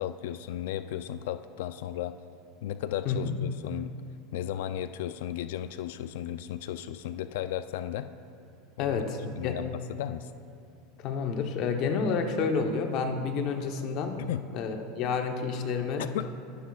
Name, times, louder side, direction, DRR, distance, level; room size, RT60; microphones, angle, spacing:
voice 1, 0.0-2.1 2.6-3.9 4.3-8.1 8.8-9.0 9.4-10.3 14.2-14.4 16.0-16.3, left 11 dB, 80° left, 11 dB, 0.4 m, -35 dB
voice 2, 8.8-9.6 11.0-14.2 14.5-16.3, left 5 dB, 45° left, 4 dB, 0.9 m, -29 dB
21.0 x 10.5 x 2.4 m, 2.6 s
supercardioid pair, 155°, 0 cm